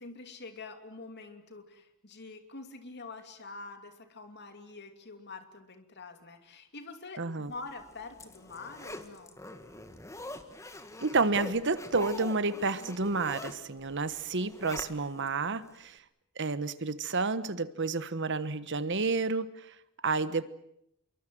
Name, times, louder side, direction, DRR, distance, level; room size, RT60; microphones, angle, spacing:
voice 1, 0.0-9.4, left 3 dB, 50° left, 7 dB, 2.8 m, -46 dB
voice 2, 7.2-7.5 11.0-16.0 16.4-19.5 20.0-20.5, right 3 dB, 55° right, 14 dB, 1.2 m, -30 dB
Zipper (clothing), 7.7-15.3 15.7-15.8, left 2 dB, 15° left, 1.8 m, -44 dB
26.0 x 23.5 x 7.7 m, 0.77 s
head